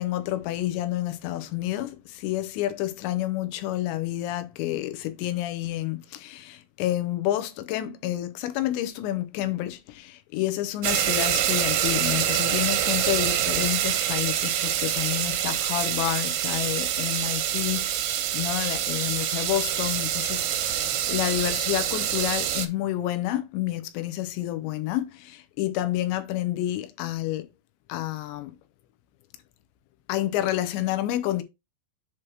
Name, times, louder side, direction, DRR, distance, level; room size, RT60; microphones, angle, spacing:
voice 1, 0.0-27.5 27.9-28.5 30.1-31.4, left 14 dB, 80° left, 2.8 m, -29 dB
sound 1, 10.8-22.7, right 11 dB, 80° right, 3.2 m, -26 dB
7.7 x 3.0 x 4.8 m
omnidirectional pair, 5.5 m